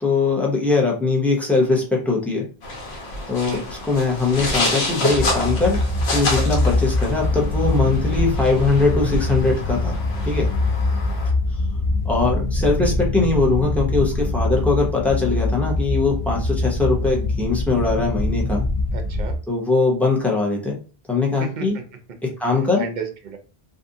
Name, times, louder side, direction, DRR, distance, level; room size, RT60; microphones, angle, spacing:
voice 1, 0.0-2.5 3.3-5.8 6.1-10.0 10.2-10.5 12.0-18.7 19.5-20.8 21.1-21.7 22.4-22.8, left 3 dB, ahead, -3 dB, 0.6 m, -21 dB
sound 1, 2.6-11.3, left 2 dB, 85° left, 1.1 m, -28 dB
sound 2, 5.1-19.4, left 2 dB, 50° left, 0.4 m, -23 dB
voice 2, 18.9-19.4 21.4-21.8 22.2-22.3 22.8-23.4, right 6 dB, 55° right, 5 dB, 0.6 m, -33 dB
2.6 x 2.4 x 2.6 m, 0.35 s
omnidirectional pair, 1.0 m